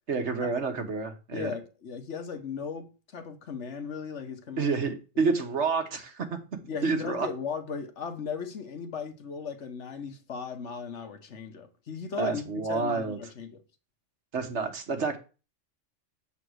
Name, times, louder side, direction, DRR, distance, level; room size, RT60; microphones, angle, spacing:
voice 1, 0.1-1.6 4.6-6.4 6.8-7.3 12.1-13.2 14.3-15.2, right 4 dB, 60° right, 1.6 m, -29 dB
voice 2, 1.3-4.8 5.3-5.4 6.7-13.6, left 6 dB, 65° left, 1.4 m, -37 dB
7.7 x 4.1 x 6.3 m
omnidirectional pair, 1.3 m